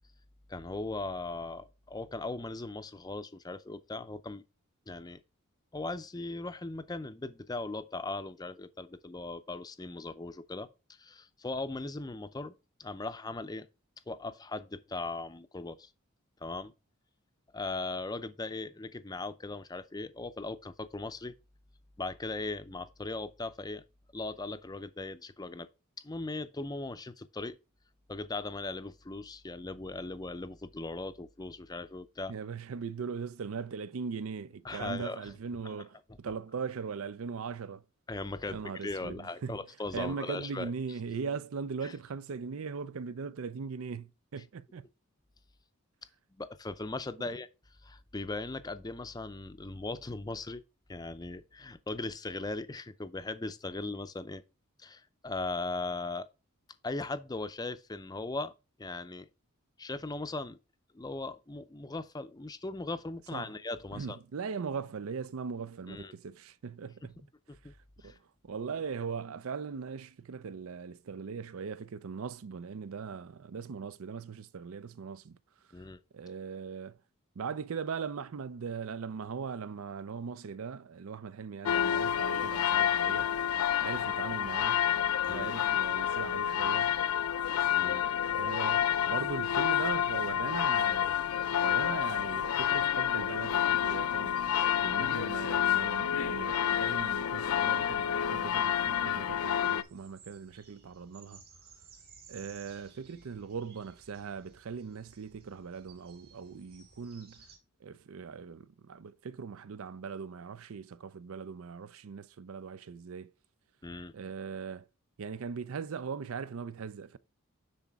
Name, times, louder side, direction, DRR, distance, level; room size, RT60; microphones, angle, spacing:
voice 1, 0.5-4.4 4.9-5.2 5.7-10.7 11.0-12.5 12.8-13.7 14.1-15.9 16.4-16.7 17.5-21.3 22.0-23.8 24.1-25.7 26.0-27.6 28.1-32.3 34.6-35.2 38.1-40.7 46.3-47.5 47.8-50.6 50.9-54.4 54.8-56.3 56.8-58.5 58.8-59.3 59.8-60.6 60.9-64.2 65.9-66.1 67.5-67.7 68.0-68.2 75.7-76.0 85.2-85.5 87.7-88.0 113.8-114.1, left 2 dB, 20° left, 0.5 m, -38 dB
voice 2, 32.3-37.8 38.5-39.6 39.9-44.9 47.2-47.3 63.3-63.5 63.9-67.2 67.6-67.8 68.0-75.9 76.1-77.0 77.4-83.4 83.8-84.9 85.3-87.0 88.3-91.1 91.6-94.4 94.8-101.4 102.3-107.5 107.8-113.3 114.1-114.9 115.2-117.2, right 5 dB, 75° right, 0.5 m, -40 dB
sound 1, 81.7-99.8, left 10 dB, 85° left, 0.4 m, -29 dB
sound 2, 96.7-107.6, right 5 dB, 45° right, 2.4 m, -59 dB
9.9 x 4.1 x 3.6 m
head